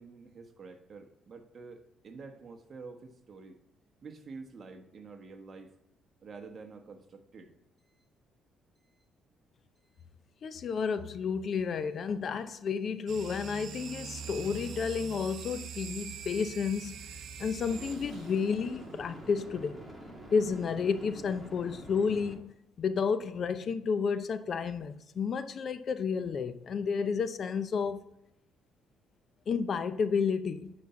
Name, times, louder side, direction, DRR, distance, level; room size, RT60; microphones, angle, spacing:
voice 1, 0.0-3.6 4.0-5.7 6.2-7.5, right 4 dB, 40° right, 1.2 m, -48 dB
voice 2, 10.4-17.1 17.4-19.8 20.3-28.1 29.5-30.7, left 5 dB, 50° left, 0.6 m, -31 dB
sound 1, 12.8-13.0 17.7-22.3, right 1 dB, 5° right, 2.3 m, -47 dB
sound 2, 13.1-18.6, right 6 dB, 70° right, 0.7 m, -43 dB
9.5 x 4.4 x 6.9 m
cardioid pair, 105°, 0 cm